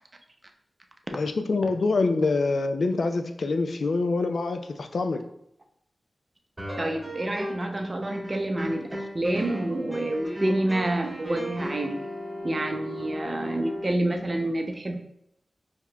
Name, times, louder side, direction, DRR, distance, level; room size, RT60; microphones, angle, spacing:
voice 1, 1.1-5.2, left 3 dB, 70° left, 7 dB, 0.3 m, -25 dB
sound 1, 6.6-7.7 8.0-13.9, equal, 20° right, 1.5 m, -36 dB
voice 2, 6.8-12.0 12.4-15.0, right 1 dB, 40° right, 4 dB, 0.6 m, -28 dB
4.7 x 2.8 x 2.3 m, 0.76 s
cardioid pair, 45°, 0 cm